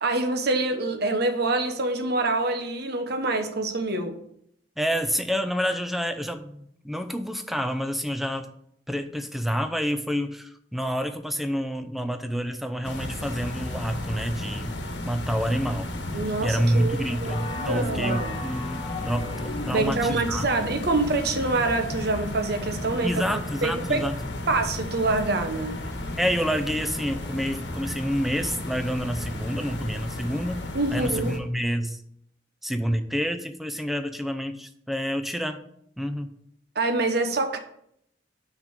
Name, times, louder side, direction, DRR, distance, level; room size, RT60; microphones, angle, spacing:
voice 1, 0.0-4.2 16.1-18.4 19.7-23.2 23.6-24.0 24.5-25.8 30.7-31.4 36.7-37.6, right 2 dB, 60° right, 7 dB, 1.0 m, -26 dB
voice 2, 4.8-8.5 8.9-14.8 15.0-15.9 16.4-20.5 23.0-24.2 26.2-30.6 30.9-32.0 32.6-35.6 36.0-36.3, equal, ahead, 8 dB, 0.6 m, -28 dB
sound 1, 12.8-31.4, left 1 dB, 70° left, 1.3 m, -34 dB
sound 2, 17.3-20.2, left 3 dB, 30° left, 0.8 m, -36 dB
6.1 x 5.3 x 6.5 m, 0.73 s
head